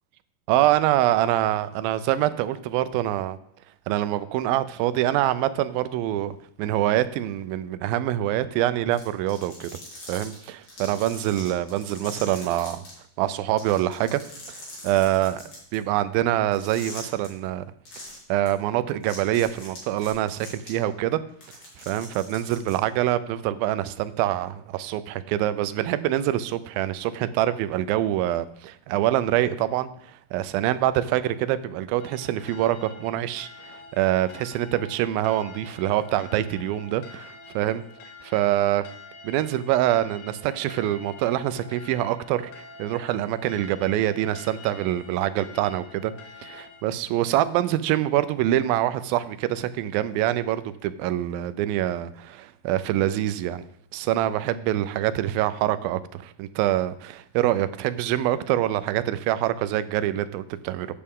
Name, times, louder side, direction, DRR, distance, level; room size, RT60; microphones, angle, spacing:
voice 1, 0.5-3.4 3.9-9.7 10.1-12.9 13.2-14.2 14.5-14.6 14.8-15.4 15.7-17.6 18.3-21.2 21.9-29.9 30.3-37.8 38.2-38.9 39.2-46.1 46.4-53.7 53.9-60.9, right 13 dB, 90° right, 14 dB, 2.4 m, -25 dB
sound 1, 8.9-12.9 13.2-13.3 13.6-15.8 16.5-17.3 17.9-18.2 18.5-18.6 19.0-20.7 21.3-22.7, left 2 dB, 50° left, 4.3 m, -42 dB
sound 2, 32.0-46.8, left 3 dB, 70° left, 2.3 m, -46 dB
11.0 x 8.6 x 3.7 m, 0.72 s
omnidirectional pair, 4.1 m